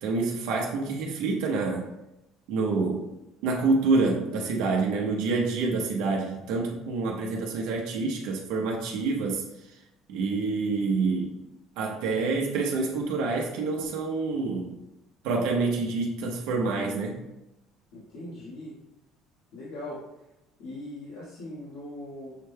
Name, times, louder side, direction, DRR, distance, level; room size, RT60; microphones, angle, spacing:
voice 1, 0.0-1.9 2.5-3.1 3.4-9.4 10.1-11.4 11.8-14.7 15.2-17.2, right 3 dB, 75° right, -1 dB, 0.7 m, -27 dB
voice 2, 17.9-18.7 19.5-20.0 20.6-22.4, left 1 dB, 75° left, -9 dB, 1.4 m, -40 dB
6.5 x 2.2 x 3.3 m, 0.91 s
cardioid pair, 165°, 0 cm